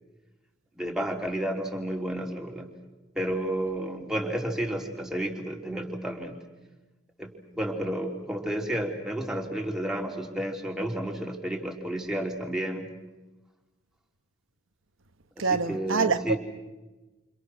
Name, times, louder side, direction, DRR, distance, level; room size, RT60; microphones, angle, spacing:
voice 1, 0.8-2.7 3.2-6.4 7.2-12.9 15.4-16.4, right 1 dB, 5° right, 3.3 m, -31 dB
voice 2, 15.4-16.4, right 4 dB, 85° right, 1.1 m, -25 dB
29.5 x 28.0 x 6.3 m
head